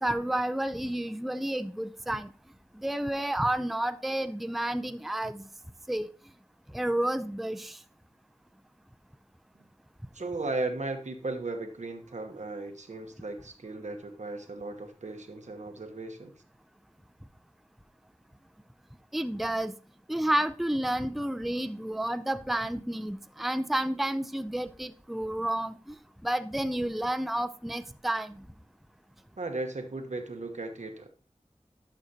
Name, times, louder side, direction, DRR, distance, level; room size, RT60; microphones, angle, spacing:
voice 1, 0.0-2.3 2.7-5.5 5.9-6.1 6.7-7.8 19.1-19.7 20.1-25.9 26.2-28.4, right 1 dB, ahead, 11 dB, 0.5 m, -30 dB
voice 2, 10.1-16.3 29.4-31.1, right 2 dB, 80° right, 5 dB, 1.0 m, -36 dB
11.5 x 6.3 x 2.8 m, 0.40 s
wide cardioid pair, 50°, 12 cm